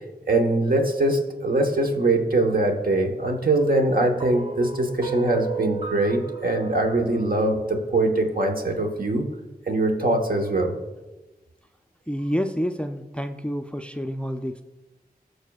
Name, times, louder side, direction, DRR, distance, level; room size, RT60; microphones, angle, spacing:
voice 1, 0.3-9.2 9.7-10.7, right 2 dB, 65° right, 3 dB, 1.1 m, -22 dB
sound 1, 4.2-8.5, right 5 dB, 40° right, 1.1 m, -35 dB
voice 2, 12.1-14.6, equal, 5° left, 7 dB, 0.4 m, -28 dB
17.0 x 6.5 x 2.3 m, 1.1 s
wide cardioid pair, 80°, 16 cm